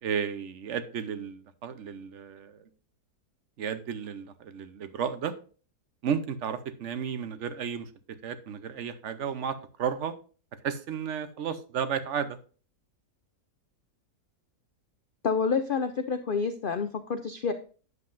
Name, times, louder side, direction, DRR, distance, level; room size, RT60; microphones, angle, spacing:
voice 1, 0.0-2.7 3.6-5.3 6.0-7.9 8.2-10.1 10.6-12.4, right 7 dB, 55° right, 11 dB, 1.0 m, -33 dB
voice 2, 15.2-17.5, left 5 dB, 90° left, 9 dB, 0.4 m, -28 dB
9.5 x 7.5 x 2.6 m, 0.38 s
omnidirectional pair, 1.7 m